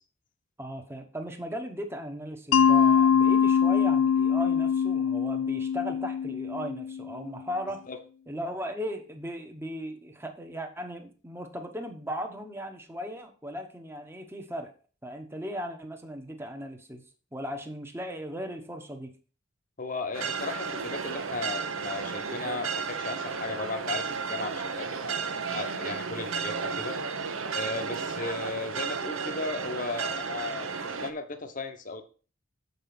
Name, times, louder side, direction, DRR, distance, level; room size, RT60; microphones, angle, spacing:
voice 1, 0.6-7.8 8.3-14.7 15.0-17.0 17.3-19.1, equal, 10° right, 4 dB, 1.2 m, -37 dB
Mallet percussion, 2.5-7.3, left 7 dB, 75° left, 0.3 m, -23 dB
voice 2, 19.8-27.0 27.5-32.0, left 3 dB, 40° left, 6 dB, 1.2 m, -36 dB
sound 1, 20.1-31.1, right 5 dB, 80° right, 1.0 m, -33 dB
7.5 x 5.5 x 6.0 m, 0.37 s
head